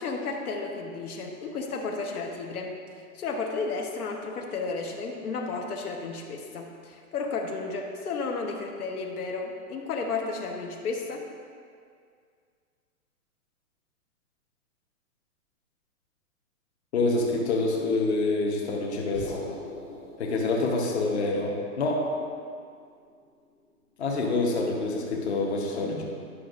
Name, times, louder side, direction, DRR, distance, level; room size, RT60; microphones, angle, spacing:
voice 1, 0.0-2.7 3.1-11.2, left 4 dB, 80° left, 1 dB, 1.2 m, -33 dB
voice 2, 16.9-19.4 20.2-22.1 24.0-26.0, left 3 dB, 45° left, -1 dB, 1.0 m, -26 dB
sound 1, 19.1-23.5, left 1 dB, 5° left, 0.7 m, -42 dB
11.0 x 6.1 x 2.5 m, 2.2 s
hypercardioid pair, 180°, 44 cm